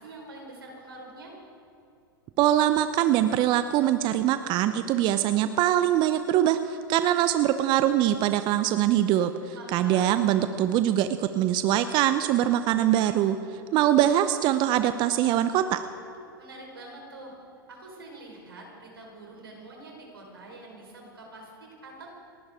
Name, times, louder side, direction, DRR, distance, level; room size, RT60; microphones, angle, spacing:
voice 1, 0.0-1.4 9.5-10.2 16.4-17.3 17.7-22.1, right 2 dB, 85° right, 0 dB, 4.5 m, -45 dB
voice 2, 2.4-13.4 13.7-15.8, right 12 dB, 40° right, 10 dB, 0.7 m, -23 dB
30.0 x 11.5 x 3.7 m, 2.6 s
hypercardioid pair, 100°, 12 cm